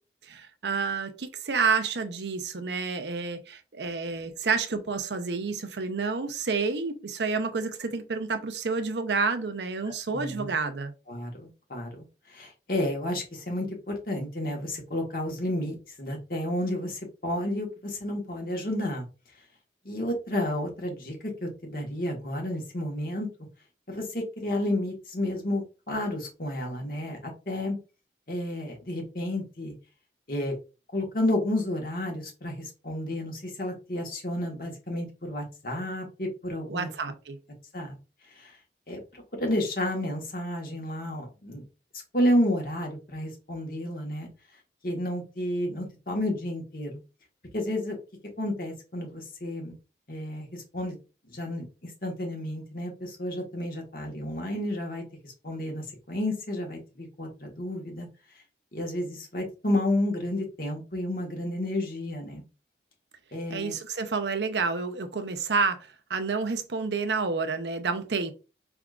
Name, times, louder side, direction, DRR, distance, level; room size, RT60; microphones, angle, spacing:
voice 1, 0.3-10.9 36.7-37.4 63.5-68.3, right 4 dB, 80° right, 0.6 m, -29 dB
voice 2, 10.1-10.5 11.1-12.0 12.3-19.0 19.8-21.2 21.4-23.3 23.9-27.8 28.3-29.7 30.3-30.5 30.9-36.9 37.7-37.9 38.4-38.5 38.9-41.6 42.1-44.3 44.8-47.0 47.5-48.0 48.4-49.7 50.1-50.9 51.3-58.1 58.7-62.4 63.3-63.7, left 1 dB, 55° left, 1.3 m, -31 dB
4.8 x 3.5 x 2.4 m
head